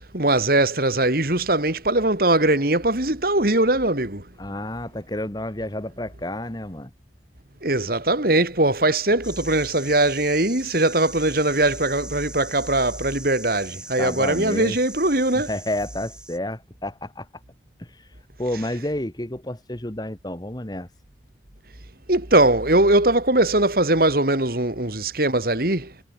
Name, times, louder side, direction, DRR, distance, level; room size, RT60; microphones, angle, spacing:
voice 1, 0.0-4.2 7.6-15.5 22.1-25.9, right 2 dB, 55° right, 2.9 m, -21 dB
voice 2, 4.4-6.9 14.0-14.8 15.3-17.3 17.8-18.1 18.4-20.9, left 1 dB, 20° left, 1.7 m, -30 dB
sound 1, 9.2-16.4, right 1 dB, 5° right, 4.1 m, -41 dB
head